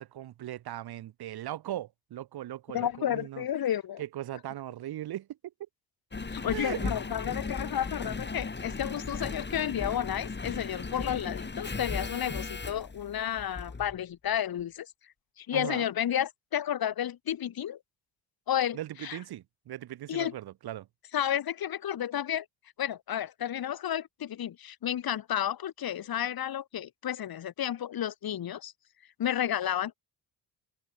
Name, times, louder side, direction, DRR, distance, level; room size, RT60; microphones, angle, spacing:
voice 1, 0.0-3.4 4.0-5.3 6.5-6.9 15.5-15.8 18.7-20.9, right 13 dB, 75° right, 3.0 m, -39 dB
voice 2, 2.7-4.0 6.3-14.9 15.4-17.8 18.5-19.2 20.1-20.3 21.1-22.4 22.8-28.7 29.2-29.9, left 10 dB, 65° left, 3.4 m, -32 dB
Engine, 6.1-14.0 14.6-14.7, left 4 dB, 30° left, 4.0 m, -37 dB
supercardioid pair, 65°, 38 cm